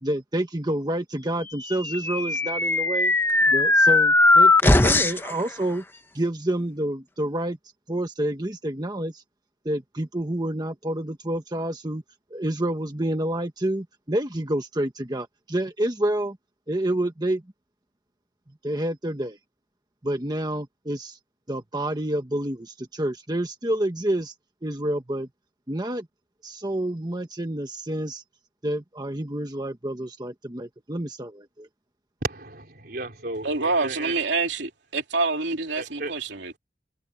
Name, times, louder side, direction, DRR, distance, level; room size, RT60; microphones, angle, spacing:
voice 1, 0.0-3.1 3.5-5.8 6.1-7.6 7.9-9.2 9.6-12.0 12.3-16.4 16.7-17.4 18.6-19.4 20.0-21.2 21.5-24.3 24.6-25.3 25.7-26.1 26.4-28.2 28.6-31.7, right 1 dB, 25° right, 1.4 m, -28 dB
sound 1, 1.7-5.3, left 2 dB, 10° left, 0.9 m, -19 dB
voice 2, 32.2-34.1 35.8-36.1, right 2 dB, 55° right, 4.0 m, -34 dB
voice 3, 33.4-36.6, right 3 dB, 85° right, 2.9 m, -26 dB
head